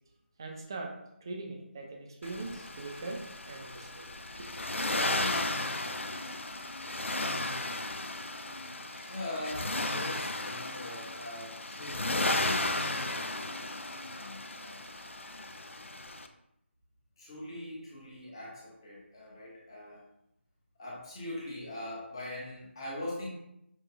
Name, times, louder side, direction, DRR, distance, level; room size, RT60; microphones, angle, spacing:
voice 1, 0.4-4.0 4.4-4.5, right 2 dB, 20° right, 1 dB, 0.4 m, -41 dB
Accelerating revving vroom, 2.2-16.3, left 2 dB, 75° left, 0.4 m, -34 dB
voice 2, 8.9-13.8 14.1-14.8 17.2-20.0 20.8-23.3, left 1 dB, 20° left, -5 dB, 0.8 m, -42 dB
6.2 x 2.2 x 2.4 m, 0.82 s
figure-of-eight pair, 160°, 7 cm